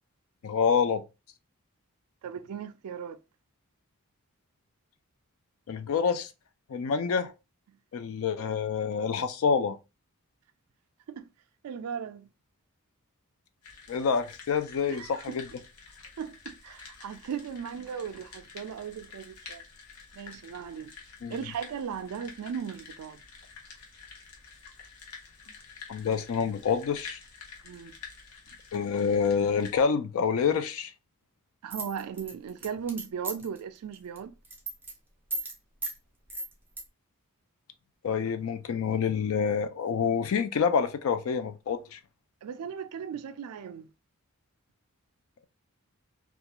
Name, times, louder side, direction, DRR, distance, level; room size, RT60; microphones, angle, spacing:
voice 1, 0.4-1.0 5.7-6.3 6.7-7.3 7.9-9.8 13.9-15.4 21.2-21.3 25.9-27.2 28.7-30.9 38.0-42.0, left 6 dB, 65° left, 0.4 m, -27 dB
voice 2, 2.2-3.2 11.1-11.3 11.6-12.3 14.9-15.4 16.2-19.6 20.1-20.9 21.3-23.2 27.6-27.9 31.6-34.3 42.4-43.9, right 7 dB, 80° right, 0.3 m, -37 dB
sound 1, 13.6-29.8, left 5 dB, 85° left, 0.8 m, -49 dB
sound 2, 31.7-33.6 33.9-34.2 34.4-34.9 35.3-35.5 35.8-36.0 36.3-36.8, right 2 dB, 10° right, 0.5 m, -35 dB
2.3 x 2.2 x 2.8 m
head